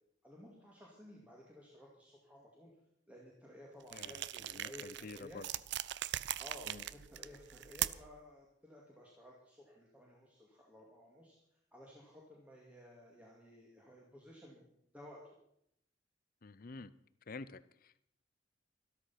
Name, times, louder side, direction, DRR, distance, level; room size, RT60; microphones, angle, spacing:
voice 1, 0.2-2.7 3.1-5.4 6.4-11.4 11.7-14.7 14.9-15.3, left 1 dB, 10° right, -3 dB, 2.3 m, -55 dB
voice 2, 3.9-5.5 6.7-6.8 16.4-16.9 17.3-18.0, left 3 dB, 50° left, 16 dB, 0.7 m, -49 dB
sound 1, 3.9-8.2, right 13 dB, 65° right, 0.5 m, -40 dB
13.0 x 13.0 x 5.8 m, 0.75 s
head